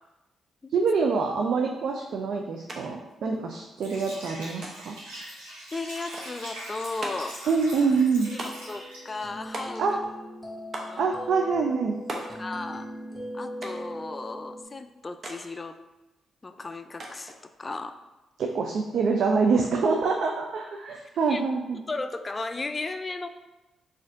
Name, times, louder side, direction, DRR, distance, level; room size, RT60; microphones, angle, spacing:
voice 1, 0.7-4.9 7.5-8.3 9.8-10.0 11.0-12.0 18.4-21.8, right 4 dB, 65° right, 2 dB, 0.3 m, -25 dB
sound 1, 2.7-2.8 3.1-3.8 4.6-5.0 6.1-6.4 7.0-7.4 8.4-8.8 9.5-10.1 10.7-11.0 12.1-12.4 13.6-13.9 15.2-15.4 17.0-17.4, right 1 dB, 50° right, 0.7 m, -38 dB
Liquid, 3.8-9.2, right 1 dB, 85° right, 1.2 m, -42 dB
voice 2, 5.7-7.4 8.3-10.0 10.8-11.2 12.4-12.9 13.3-15.8 16.4-18.0 21.3-21.4 21.7-23.3, left 3 dB, 30° left, 9 dB, 0.3 m, -35 dB
sound 2, 8.2-14.6, equal, 10° left, 1.0 m, -40 dB
4.2 x 2.5 x 3.6 m, 1.0 s
hypercardioid pair, 45°, 0 cm